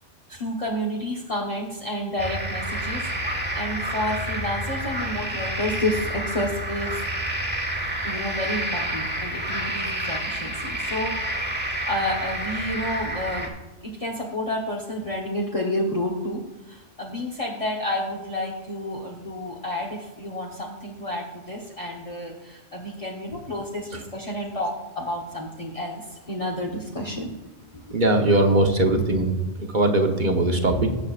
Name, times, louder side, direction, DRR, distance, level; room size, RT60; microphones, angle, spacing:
voice 1, 0.3-3.1 3.6-7.0 8.0-11.2 11.9-13.5 13.8-27.4 27.7-28.0, left 1 dB, 30° left, -2 dB, 1.1 m, -30 dB
sound 1, 2.2-13.5, right 1 dB, 10° right, 1.3 m, -29 dB
voice 2, 27.9-31.0, right 2 dB, 45° right, 3 dB, 1.1 m, -21 dB
17.5 x 7.5 x 2.4 m, 1.0 s
omnidirectional pair, 1.2 m